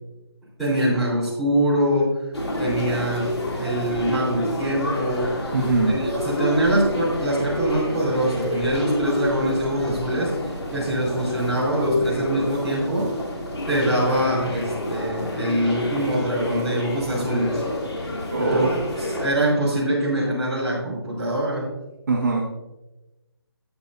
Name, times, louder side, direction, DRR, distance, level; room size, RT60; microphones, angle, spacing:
voice 1, 0.6-2.1 2.6-3.3 3.6-5.3 5.9-10.3 10.7-13.1 13.7-17.6 18.4-21.7, right 1 dB, ahead, -14 dB, 3.7 m, -24 dB
sound 1, 2.3-19.3, left 1 dB, 80° left, 2.7 m, -28 dB
voice 2, 5.5-6.0 15.1-15.2 18.3-18.7 22.1-22.4, right 3 dB, 45° right, -3 dB, 1.6 m, -21 dB
12.5 x 8.5 x 2.6 m, 1.0 s
hypercardioid pair, 170°, 14 cm